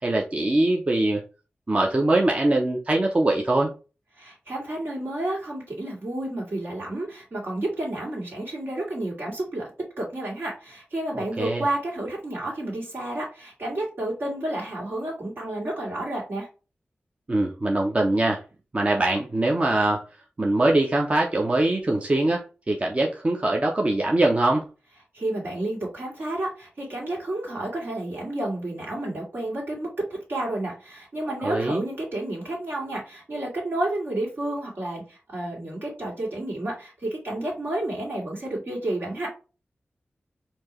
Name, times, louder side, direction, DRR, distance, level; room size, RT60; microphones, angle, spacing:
voice 1, 0.0-1.2 1.7-3.7 11.1-11.6 17.3-18.4 18.7-20.0 20.4-24.7 31.4-31.8, right 2 dB, 35° right, 0 dB, 0.6 m, -22 dB
voice 2, 4.2-9.7 10.0-16.5 25.1-39.3, right 1 dB, 65° right, -2 dB, 2.2 m, -30 dB
4.4 x 2.7 x 3.0 m, 0.33 s
wide cardioid pair, 75°, 4 cm